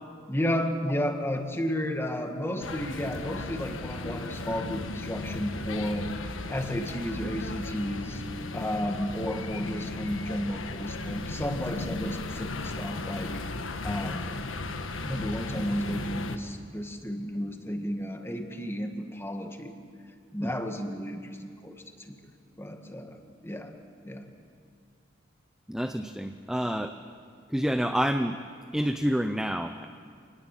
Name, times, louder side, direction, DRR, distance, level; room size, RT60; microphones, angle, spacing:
voice 1, 0.3-8.2 8.5-13.3 13.8-14.3 15.1-19.8 20.3-21.8 22.1-22.2 22.6-23.7 24.0-24.3, equal, 10° left, 5 dB, 1.9 m, -32 dB
sound 1, 2.6-16.4, left 2 dB, 85° left, 1.4 m, -36 dB
voice 2, 25.7-26.9 27.5-28.4 28.7-29.9, equal, 5° right, 7 dB, 0.6 m, -28 dB
27.0 x 20.0 x 7.6 m, 2.3 s
head